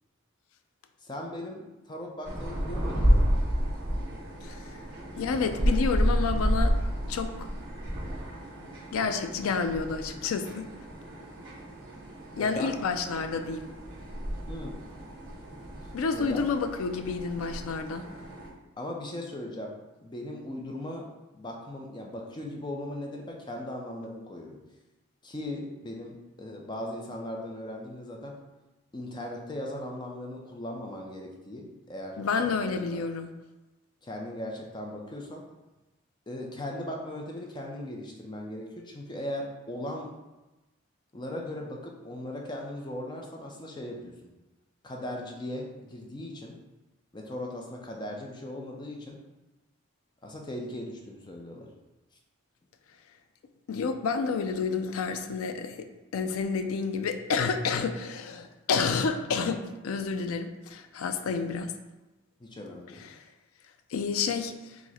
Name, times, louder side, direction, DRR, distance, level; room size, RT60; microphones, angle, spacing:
voice 1, 1.0-3.3 12.3-12.7 14.5-14.7 15.8-16.4 18.8-19.7 20.0-21.1 21.3-24.6 25.2-28.4 28.9-33.0 34.0-35.4 36.3-40.1 41.1-44.2 44.8-46.6 47.1-49.2 50.2-51.7 62.4-63.0, left 1 dB, 20° left, 0 dB, 0.4 m, -38 dB
sound 1, 2.2-18.5, equal, 20° right, 1.4 m, -31 dB
voice 2, 5.2-6.7 7.1-7.5 8.9-10.7 12.4-13.7 15.9-18.1 32.2-33.3 53.7-55.8 56.1-61.7 63.0-63.2 63.9-64.8, left 5 dB, 85° left, 8 dB, 0.4 m, -29 dB
4.7 x 2.1 x 4.1 m, 1.1 s
head